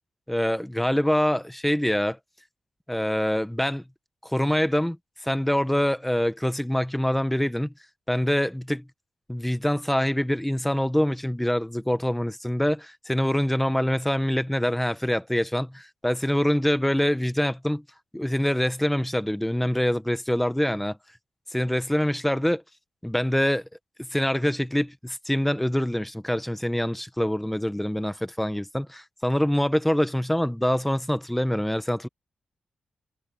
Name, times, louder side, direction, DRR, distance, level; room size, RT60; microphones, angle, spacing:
voice 1, 0.3-2.2 2.9-3.8 4.2-5.0 5.2-7.7 8.1-8.8 9.3-17.8 18.1-21.0 21.5-22.6 23.0-23.6 24.1-32.1, equal, 5° left, 1.1 m, -25 dB
cardioid pair, 80°, 3 cm